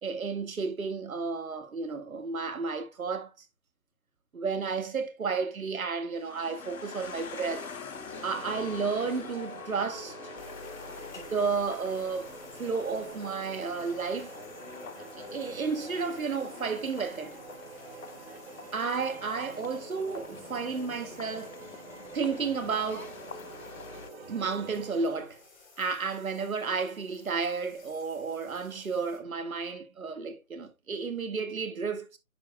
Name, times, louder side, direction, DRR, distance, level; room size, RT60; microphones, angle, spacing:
voice 1, 0.0-3.3 4.3-7.7 8.2-10.3 11.2-12.3 12.6-14.3 15.2-17.3 18.7-21.5 22.1-23.1 24.3-25.4 25.8-32.2, right 5 dB, 75° right, 1.9 m, -32 dB
sound 1, 6.1-24.1, left 5 dB, 75° left, 1.4 m, -46 dB
sound 2, 7.9-25.4, right 3 dB, 45° right, 2.1 m, -47 dB
sound 3, 10.4-29.2, left 4 dB, 30° left, 3.0 m, -54 dB
9.7 x 5.8 x 2.3 m
hypercardioid pair, 165°, 42 cm